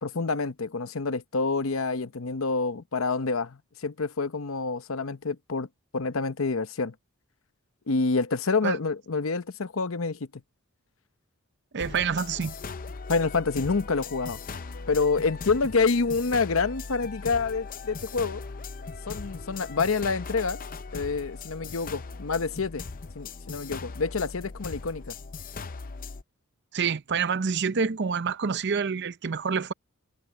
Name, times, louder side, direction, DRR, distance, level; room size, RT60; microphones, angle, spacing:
voice 1, 0.0-5.7 5.9-6.9 7.9-10.4 13.1-14.4 14.9-18.4 19.1-20.6 20.9-22.8 23.1-25.1, left 4 dB, 65° left, 0.8 m, -27 dB
voice 2, 11.7-12.5 26.7-29.7, right 6 dB, 55° right, 0.6 m, -27 dB
sound 1, 11.8-26.2, left 4 dB, 40° left, 0.6 m, -39 dB
head